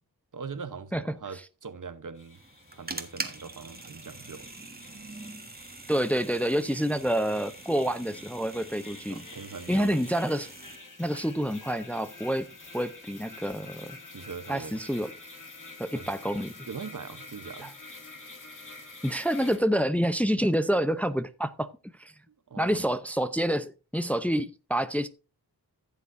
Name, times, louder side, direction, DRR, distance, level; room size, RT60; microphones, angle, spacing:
voice 1, 0.3-2.4 2.7-4.5 9.1-10.1 14.1-14.8 15.9-16.1 16.6-17.7 22.3-22.8, right 5 dB, 55° right, 1.0 m, -41 dB
sound 1, 2.1-19.6, left 3 dB, 50° left, 2.4 m, -48 dB
sound 2, 2.3-10.8, right 2 dB, 25° right, 1.5 m, -43 dB
voice 2, 5.9-9.2 9.7-10.5 11.0-12.5 12.7-14.0 14.5-15.1 15.8-16.5 17.6-17.7 19.0-21.7 22.0-22.1 22.6-25.1, equal, 5° left, 0.6 m, -28 dB
15.0 x 7.1 x 2.6 m
cardioid pair, 50°, 39 cm